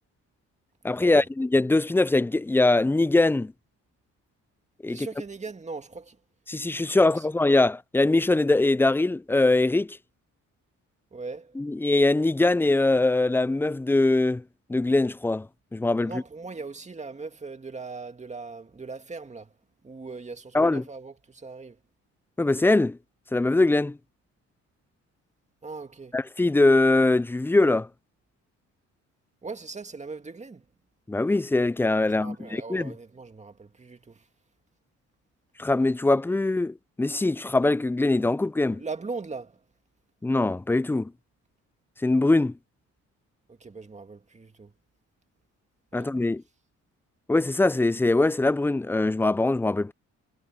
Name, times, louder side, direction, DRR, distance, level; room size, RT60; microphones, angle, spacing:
voice 1, 0.8-3.5 4.8-5.1 6.5-10.0 11.6-14.4 14.7-15.5 15.7-16.2 20.5-20.8 22.4-23.0 23.3-24.0 26.1-27.9 31.1-32.9 35.6-38.8 40.2-41.1 42.0-42.5 45.9-46.4 47.3-49.9, left 2 dB, 10° left, 0.4 m, -22 dB
voice 2, 4.9-6.2 7.0-7.3 11.1-11.6 16.0-19.5 19.8-21.8 25.6-26.2 29.4-30.6 32.0-34.2 38.7-39.6 43.5-44.7 45.9-46.1, right 4 dB, 25° right, 2.1 m, -39 dB
cardioid pair, 90°, 30 cm